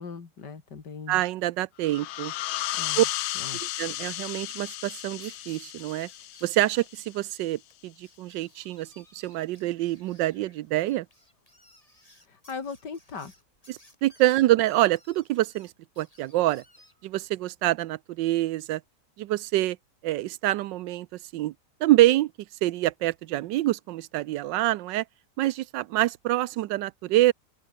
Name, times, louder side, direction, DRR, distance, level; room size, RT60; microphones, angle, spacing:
voice 1, 0.0-1.2 2.8-3.0 3.4-3.8 12.3-13.3, left 5 dB, 70° left, 3.1 m, -39 dB
voice 2, 1.1-2.3 3.0-3.1 3.6-6.1 6.4-11.1 13.7-15.7 16.0-16.6 17.0-18.8 19.2-19.8 20.0-21.1 21.3-21.5 21.8-22.3 22.6-25.0 25.4-27.3, right 15 dB, 80° right, 1.3 m, -26 dB
sound 1, 1.8-7.2, left 15 dB, 85° left, 1.3 m, -34 dB
sound 2, 5.0-7.0 7.3-7.4 7.7-7.8 8.0-17.2, left 1 dB, 20° left, 7.1 m, -59 dB
open air
omnidirectional pair, 2.0 m